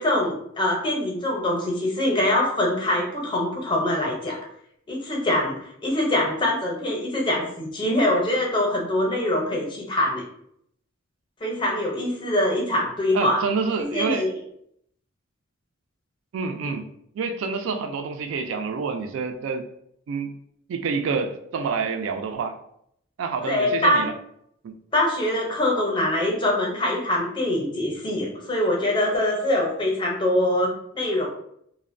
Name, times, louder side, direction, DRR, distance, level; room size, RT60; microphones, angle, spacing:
voice 1, 0.0-4.4 4.9-10.2 11.4-13.4 13.8-14.4 16.6-16.7 23.4-24.0 24.9-31.3, left 1 dB, 25° left, -1 dB, 0.6 m, -24 dB
voice 2, 13.1-14.3 16.3-16.9 17.1-19.6 20.1-20.3 20.7-22.6 23.2-24.1 24.6-24.8, right 5 dB, 70° right, 7 dB, 0.3 m, -27 dB
2.5 x 2.0 x 2.5 m, 0.71 s
head